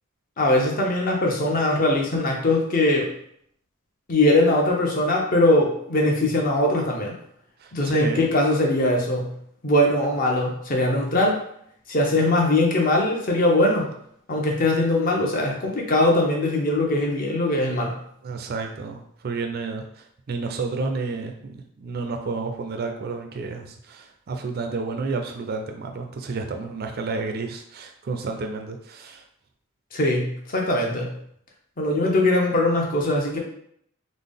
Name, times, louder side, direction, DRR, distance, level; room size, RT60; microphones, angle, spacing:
voice 1, 0.4-3.1 4.1-7.2 7.7-9.3 9.6-11.4 11.9-13.9 14.3-18.0 29.9-31.2 31.8-33.4, left 1 dB, 45° left, 0 dB, 0.7 m, -21 dB
voice 2, 7.9-8.3 18.2-19.8 20.3-29.2, right 4 dB, 50° right, 4 dB, 0.4 m, -30 dB
3.8 x 2.0 x 3.4 m, 0.69 s
head